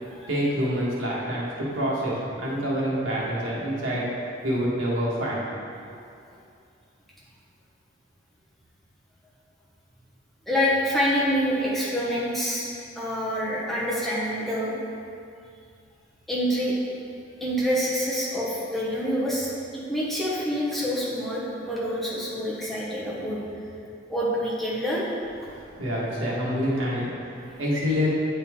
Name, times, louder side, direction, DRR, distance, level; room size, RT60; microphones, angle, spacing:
voice 1, 0.3-4.1 4.4-5.5 25.5-28.1, equal, 90° right, -6 dB, 1.7 m, -27 dB
voice 2, 10.5-12.7 13.0-14.7 16.3-16.7 17.4-23.4 24.1-25.1 25.4-25.5, equal, ahead, -8 dB, 1.1 m, -26 dB
9.0 x 4.3 x 3.7 m, 2.4 s
head